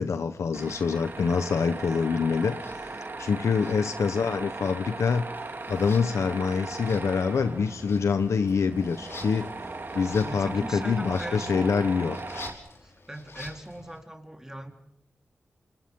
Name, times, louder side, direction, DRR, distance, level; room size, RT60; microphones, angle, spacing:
voice 1, 0.0-5.2 5.7-9.5 9.9-12.2, left 5 dB, 90° left, 9 dB, 1.1 m, -26 dB
Tools, 0.5-12.5, right 3 dB, 45° right, 3.0 m, -38 dB
sound 1, 2.5-2.8 3.5-4.3 4.5-14.0, left 3 dB, 65° left, 5.6 m, -48 dB
voice 2, 9.9-11.7 12.8-14.7, right 1 dB, 10° right, 4 dB, 4.1 m, -40 dB
29.5 x 27.5 x 3.8 m, 0.73 s
cardioid pair, 65°, 5 cm